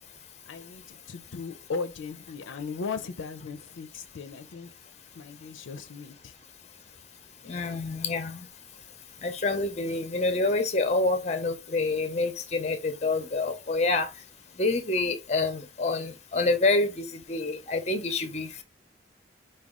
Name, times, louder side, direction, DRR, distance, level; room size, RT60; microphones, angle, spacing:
voice 1, 0.5-4.7 5.2-6.3 7.4-7.8, left 4 dB, 85° left, 0.5 m, -37 dB
voice 2, 7.5-8.5 9.2-14.1 14.6-18.6, left 3 dB, 35° left, 0.6 m, -27 dB
4.7 x 2.3 x 3.5 m
head